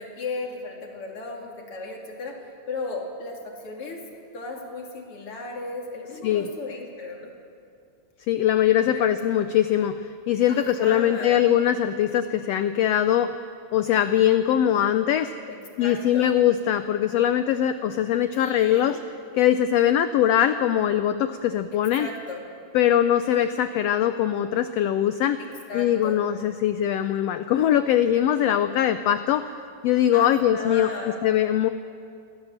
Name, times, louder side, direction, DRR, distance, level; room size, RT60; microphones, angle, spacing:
voice 1, 0.0-2.4 2.7-4.0 4.3-7.3 8.9-9.0 10.5-11.5 15.5-16.3 18.3-19.1 21.7-22.4 25.4-26.2 30.1-31.2, left 3 dB, 45° left, 0 dB, 3.4 m, -36 dB
voice 2, 8.3-13.4 13.7-15.3 15.8-19.0 19.3-22.1 22.7-25.4 25.7-29.5 29.8-30.9 31.2-31.7, left 11 dB, 85° left, 10 dB, 1.4 m, -22 dB
23.5 x 16.5 x 7.3 m, 2.4 s
omnidirectional pair, 3.6 m